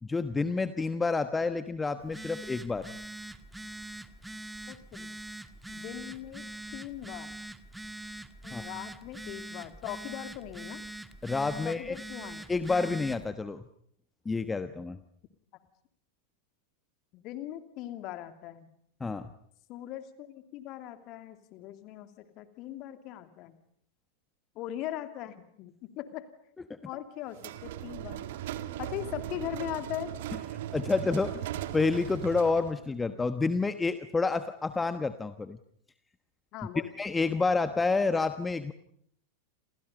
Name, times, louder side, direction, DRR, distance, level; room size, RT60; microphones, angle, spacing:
voice 1, 0.0-2.9 8.5-8.6 11.2-12.0 12.5-13.6 14.2-15.0 19.0-19.3 30.7-31.5 31.7-35.6 37.0-38.7, left 4 dB, 10° left, 11 dB, 1.2 m, -29 dB
Telephone, 2.0-13.3, right 1 dB, 5° right, 1.5 m, -43 dB
voice 2, 4.7-5.1 5.7-7.4 8.4-10.8 11.6-12.5 17.1-18.7 19.7-23.5 24.5-26.3 26.8-28.3 28.8-30.1 36.5-36.9, left 13 dB, 40° left, 9 dB, 2.7 m, -40 dB
sound 1, 27.3-32.8, right 12 dB, 55° right, 2.0 m, -38 dB
29.0 x 28.5 x 5.5 m, 0.67 s
figure-of-eight pair, 90°, 0 cm